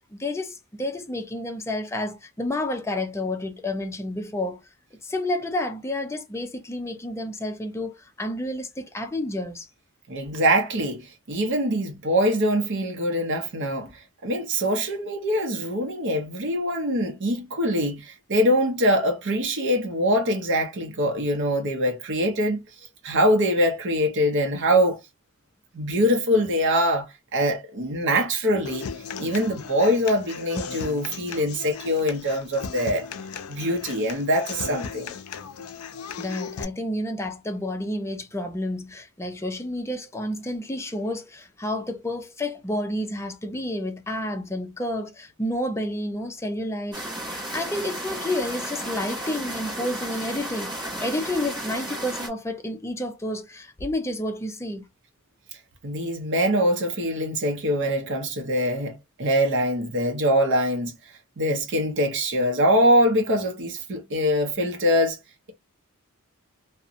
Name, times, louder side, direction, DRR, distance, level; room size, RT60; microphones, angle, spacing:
voice 1, 0.1-4.6 5.0-9.7 36.2-47.0 47.5-54.9, left 1 dB, 15° left, 0.4 m, -30 dB
voice 2, 10.1-22.6 23.0-25.0 25.7-28.9 29.2-33.1 33.5-35.1 55.8-60.9 61.4-65.2, equal, 55° right, 0.6 m, -23 dB
Human voice / Acoustic guitar, 28.7-36.6, left 6 dB, 80° left, 0.4 m, -36 dB
sound 1, 46.9-52.3, right 1 dB, 20° right, 1.1 m, -33 dB
2.7 x 2.1 x 2.4 m
head